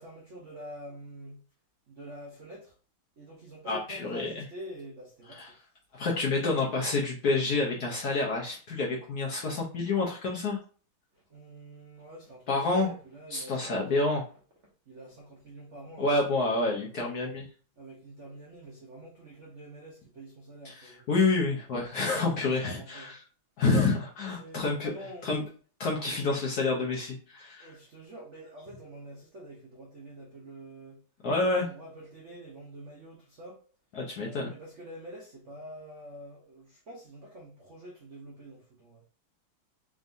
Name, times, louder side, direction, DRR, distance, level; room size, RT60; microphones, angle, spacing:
voice 1, 0.0-1.4 1.9-2.7 3.2-5.4 11.1-14.2 14.9-16.9 17.8-21.3 22.6-23.1 24.4-25.3 27.6-31.0 31.4-33.6 34.2-39.0, right 1 dB, 65° right, 0.7 m, -46 dB
voice 2, 3.7-4.4 5.3-5.5 5.9-10.6 12.5-12.9 13.3-14.2 16.0-17.4 20.6-23.2 23.6-24.9 25.2-25.4 25.8-27.7 31.2-31.7 33.9-34.5, left 3 dB, 65° left, 1.0 m, -28 dB
3.9 x 3.6 x 2.6 m
omnidirectional pair, 2.4 m